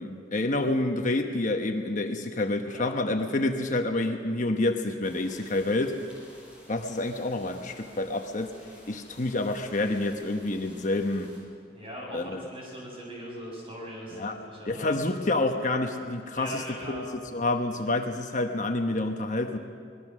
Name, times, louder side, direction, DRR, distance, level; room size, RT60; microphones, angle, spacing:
voice 1, 0.0-6.0 6.7-8.5 8.9-11.3 12.1-12.4 14.1-14.4 14.7-17.0 17.3-19.6, left 2 dB, 45° left, 4 dB, 1.1 m, -28 dB
sound 1, 5.0-11.4, left 1 dB, 5° right, 7.4 m, -53 dB
voice 2, 11.7-14.9 16.3-17.0, equal, 30° right, -3 dB, 7.4 m, -40 dB
24.5 x 20.0 x 6.3 m, 2.2 s
head